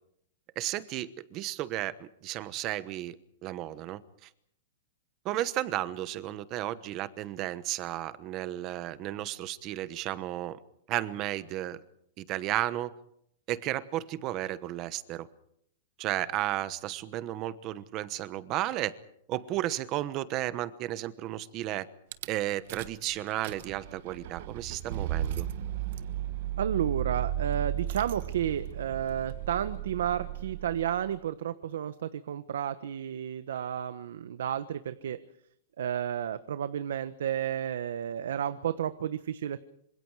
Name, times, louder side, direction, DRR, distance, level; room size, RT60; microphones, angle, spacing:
voice 1, 0.6-3.2 3.4-4.3 5.2-10.6 10.9-11.8 12.2-12.9 13.5-15.3 16.0-18.9 19.3-21.9 22.3-25.5, right 14 dB, 25° right, 15 dB, 1.1 m, -33 dB
Rattle / Car / Engine starting, 22.1-22.3 22.7-23.0 23.3-31.0, right 11 dB, 45° right, 1.4 m, -35 dB
voice 2, 26.6-35.2 35.8-39.6, right 9 dB, 75° right, 12 dB, 1.2 m, -32 dB
27.0 x 26.0 x 4.8 m, 0.72 s
supercardioid pair, 175°, 0 cm